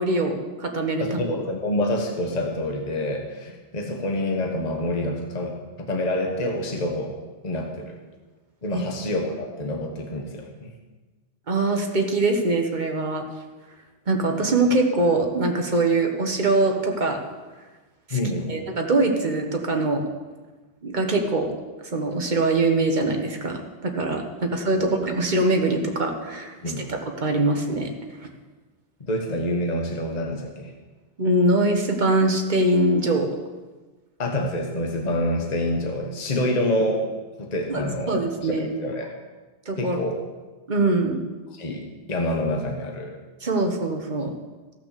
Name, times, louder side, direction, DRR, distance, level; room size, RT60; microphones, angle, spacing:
voice 1, 0.0-1.2 8.7-8.8 11.5-13.2 14.1-17.2 18.1-18.2 18.5-20.1 20.8-21.5 21.9-27.9 31.2-33.3 37.7-38.7 39.7-40.0 40.7-41.2 43.4-44.4, right 2 dB, 40° right, 3 dB, 1.4 m, -23 dB
voice 2, 1.0-7.1 7.4-8.0 8.6-10.7 18.1-18.6 24.8-24.9 26.6-26.8 29.0-30.7 34.2-37.0 37.4-38.1 38.4-39.1 39.8-40.2 41.5-43.2, left 1 dB, 35° left, 2 dB, 1.4 m, -27 dB
15.5 x 5.9 x 6.7 m, 1.3 s
omnidirectional pair, 1.2 m